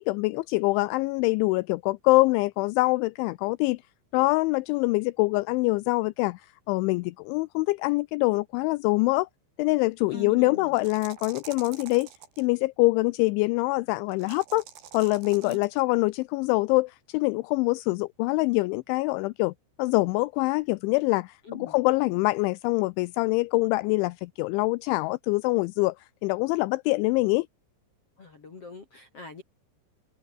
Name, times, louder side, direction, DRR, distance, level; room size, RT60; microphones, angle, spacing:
voice 1, 0.0-3.8 4.1-6.4 6.7-9.3 9.6-12.1 12.4-14.6 14.9-19.5 19.8-25.9 26.2-27.5, left 23 dB, 85° left, 2.7 m, -24 dB
voice 2, 10.1-10.8 15.4-15.6 21.4-21.7 28.2-29.4, left 4 dB, 35° left, 3.0 m, -41 dB
sound 1, 10.7-12.5 14.1-15.8, right 9 dB, 60° right, 4.7 m, -46 dB
omnidirectional pair, 5.9 m